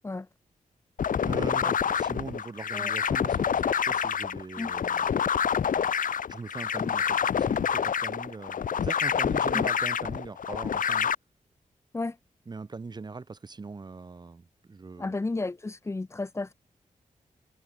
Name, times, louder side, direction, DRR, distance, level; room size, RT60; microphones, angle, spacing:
sound 1, 1.0-11.1, left 7 dB, 85° left, 2.8 m, -27 dB
voice 1, 1.2-5.2 6.3-11.1 12.5-15.2, right 4 dB, 30° right, 3.4 m, -41 dB
voice 2, 15.0-16.5, left 3 dB, 20° left, 1.4 m, -32 dB
wide cardioid pair, 175°, 13 cm